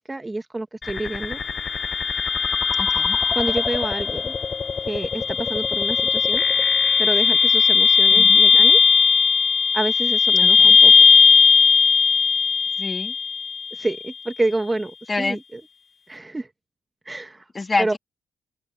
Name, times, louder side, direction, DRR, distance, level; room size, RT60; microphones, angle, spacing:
voice 1, 0.1-1.4 3.3-4.3 4.9-6.4 7.0-8.8 9.7-10.9 13.7-15.6 16.1-16.5 17.0-17.4 17.8-18.0, right 2 dB, 15° right, 0.9 m, -28 dB
sound 1, 0.8-13.8, left 6 dB, 40° left, 0.4 m, -18 dB
voice 2, 2.8-3.2 8.1-8.4 10.4-10.8 12.8-13.1 15.1-15.4 17.5-18.0, left 3 dB, 25° left, 2.2 m, -27 dB
open air
cardioid pair, 90°, 0 cm